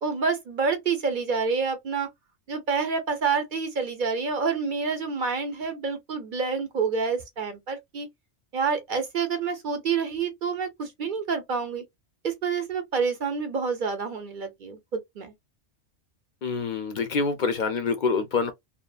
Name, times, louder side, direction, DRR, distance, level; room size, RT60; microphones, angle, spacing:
voice 1, 0.0-2.1 2.5-8.1 8.5-11.8 12.2-15.3, right 5 dB, 55° right, 0.7 m, -28 dB
voice 2, 16.4-18.5, left 4 dB, 55° left, 0.5 m, -26 dB
2.6 x 2.4 x 2.3 m
omnidirectional pair, 1.2 m